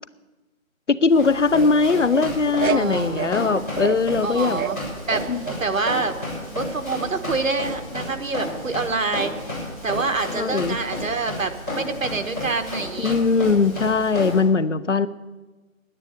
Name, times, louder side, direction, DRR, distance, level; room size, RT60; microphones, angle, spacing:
voice 1, 0.9-4.6 5.3-5.5 10.3-10.8 13.0-15.1, left 4 dB, 60° left, 16 dB, 0.6 m, -20 dB
Run, 1.1-14.4, left 1 dB, 10° left, 4.8 m, -32 dB
sound 1, 2.0-4.0 4.3-5.6 6.1-6.6 8.6-8.7, right 8 dB, 90° right, 0.7 m, -28 dB
voice 2, 2.7-3.7 4.2-4.8 5.1-6.1 6.5-13.2, right 3 dB, 70° right, 8 dB, 1.3 m, -27 dB
9.8 x 9.6 x 9.5 m, 1.2 s
figure-of-eight pair, 180°, 41 cm